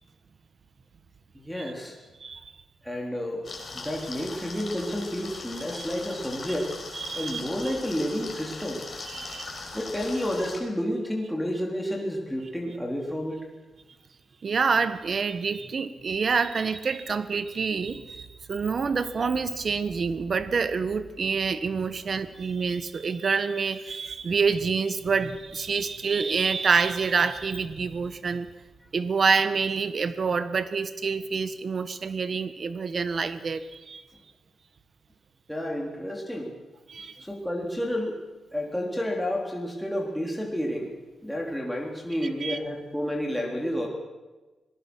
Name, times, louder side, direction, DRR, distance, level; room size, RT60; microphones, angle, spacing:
voice 1, 1.3-2.0 2.8-3.4 3.7-6.8 7.1-8.8 9.7-13.5 35.5-36.6 37.2-38.2 38.5-40.9 41.2-43.9, equal, ahead, -1 dB, 3.7 m, -30 dB
voice 2, 2.2-2.5 7.0-7.4 9.1-9.5 14.4-28.5 28.9-34.0 36.9-37.2 42.4-42.6, right 5 dB, 40° right, 11 dB, 1.4 m, -27 dB
sound 1, 3.4-10.6, left 3 dB, 35° left, 5.0 m, -40 dB
25.5 x 19.5 x 6.3 m, 1.2 s
wide cardioid pair, 140°, 0 cm